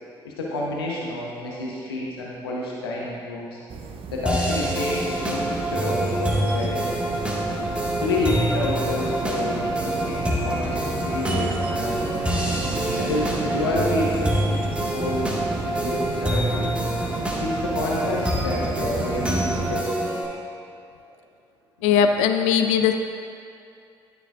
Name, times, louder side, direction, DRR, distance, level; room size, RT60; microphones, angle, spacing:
voice 1, 0.2-3.6 4.1-7.1 8.0-12.1 13.0-15.3 15.6-16.7 17.4-19.9 21.9-22.0, left 2 dB, 80° left, -3 dB, 0.9 m, -29 dB
sound 1, 3.7-19.8, right 5 dB, 45° right, 0.6 m, -33 dB
sound 2, 4.3-20.3, right 1 dB, 10° right, 1.7 m, -26 dB
voice 2, 21.8-23.0, left 7 dB, 60° left, 7 dB, 0.4 m, -19 dB
12.0 x 7.0 x 2.4 m, 2.4 s
figure-of-eight pair, 40°, 13 cm